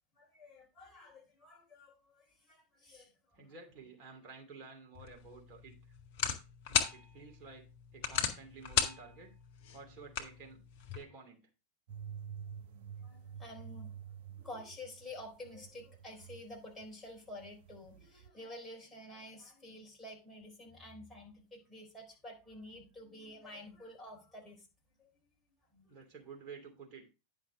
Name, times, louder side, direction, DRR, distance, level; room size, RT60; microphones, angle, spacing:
voice 1, 0.2-3.5 13.0-14.0 14.3-24.7 25.0-25.1 25.7-26.0, left 1 dB, 5° left, -3 dB, 3.9 m, -50 dB
voice 2, 3.3-5.8 6.7-7.6 7.9-9.3 9.7-10.6 10.9-11.5 25.9-27.1, right 5 dB, 35° right, 2 dB, 2.6 m, -52 dB
sound 1, 4.9-11.0, left 7 dB, 45° left, 1.4 m, -37 dB
sound 2, 11.9-16.9 17.2-18.3, right 7 dB, 55° right, 1.0 m, -48 dB
10.0 x 5.8 x 3.7 m, 0.29 s
figure-of-eight pair, 90°, 0 cm